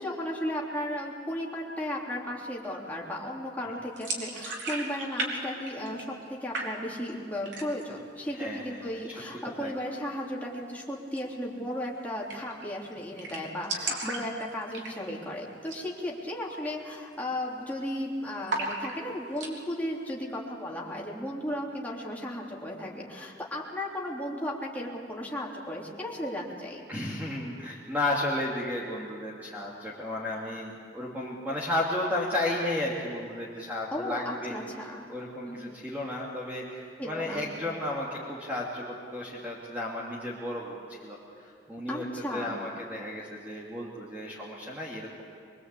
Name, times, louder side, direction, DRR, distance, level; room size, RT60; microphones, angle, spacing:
voice 1, 0.0-26.9 33.9-35.1 35.4-35.8 37.0-37.6 41.9-42.7, left 1 dB, 10° left, -4 dB, 3.3 m, -35 dB
sound 1, 4.0-5.3 5.6-6.3 6.5-7.1 7.4-8.0 8.3-8.4 8.7-9.4 11.1-11.2 11.5-11.6 11.8-11.9 12.3-12.6 12.9-13.0 13.2-15.2 15.6-15.9 16.2-16.3 16.9-17.1 17.4-18.0 18.5-19.5, right 3 dB, 80° right, 4.2 m, -35 dB
voice 2, 8.4-9.0 9.6-9.7 26.9-34.5 35.1-41.2 41.4-42.0 42.3-45.2, left 1 dB, 10° right, -5 dB, 2.7 m, -33 dB
24.0 x 23.5 x 8.4 m, 2.3 s
head